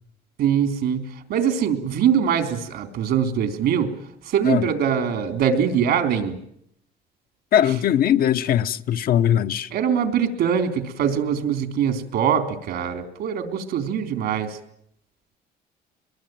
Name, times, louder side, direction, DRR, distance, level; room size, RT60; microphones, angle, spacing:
voice 1, 0.4-3.9 4.3-6.4 9.7-14.6, right 8 dB, 75° right, 3.7 m, -23 dB
voice 2, 7.5-9.7, left 10 dB, 60° left, 1.0 m, -20 dB
23.0 x 22.5 x 9.2 m
cardioid pair, 110°, 17 cm